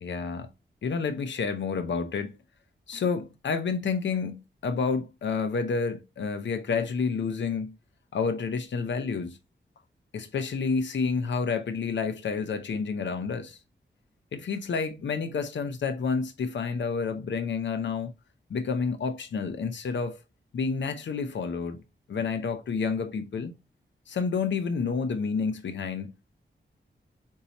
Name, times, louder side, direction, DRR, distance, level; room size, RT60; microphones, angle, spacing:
voice 1, 0.0-0.5 0.8-2.4 2.9-7.7 8.1-9.4 10.1-13.6 14.3-18.1 18.5-20.2 20.5-21.8 22.1-23.5 24.1-26.3, left 5 dB, 90° left, 0.7 m, -29 dB
4.6 x 2.8 x 2.9 m
wide cardioid pair, 110°, 19 cm